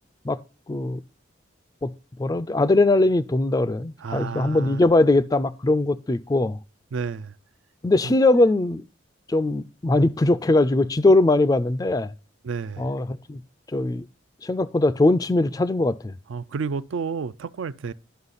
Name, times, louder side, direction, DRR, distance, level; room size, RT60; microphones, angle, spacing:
voice 1, 0.7-1.0 1.8-1.9 2.2-6.6 7.8-8.8 9.3-12.1 12.8-13.4 13.7-14.1 14.4-16.1, left 2 dB, 20° left, 0.3 m, -21 dB
voice 2, 4.0-4.8 6.9-7.4 8.0-8.1 12.4-12.9 16.3-17.9, right 5 dB, 80° right, 0.4 m, -31 dB
11.5 x 5.6 x 4.0 m
head